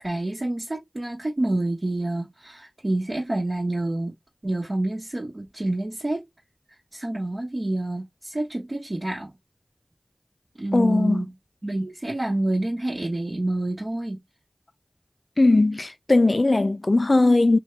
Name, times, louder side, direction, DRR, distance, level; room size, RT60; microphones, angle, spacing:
voice 1, 0.0-4.1 4.4-6.2 6.9-9.3 10.6-11.3 11.6-14.2, right 1 dB, 55° right, 1.1 m, -28 dB
voice 2, 10.7-11.2 15.4-17.6, left 2 dB, 60° left, 0.3 m, -19 dB
2.8 x 2.2 x 3.1 m
wide cardioid pair, 45°, 0 cm